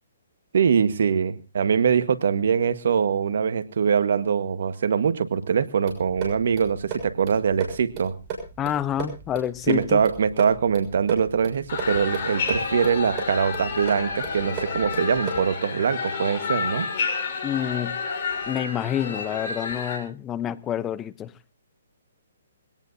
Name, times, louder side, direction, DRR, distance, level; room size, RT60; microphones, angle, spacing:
voice 1, 0.5-8.1 9.7-16.9, right 7 dB, 65° right, 1.5 m, -23 dB
sound 1, 5.9-15.6, right 5 dB, 30° right, 6.5 m, -36 dB
voice 2, 8.6-10.0 17.4-18.0 18.5-21.3, left 10 dB, 15° left, 0.8 m, -28 dB
sound 2, 11.7-20.0, left 5 dB, 45° left, 6.7 m, -30 dB
22.0 x 18.0 x 2.7 m
hypercardioid pair, 145°, 0 cm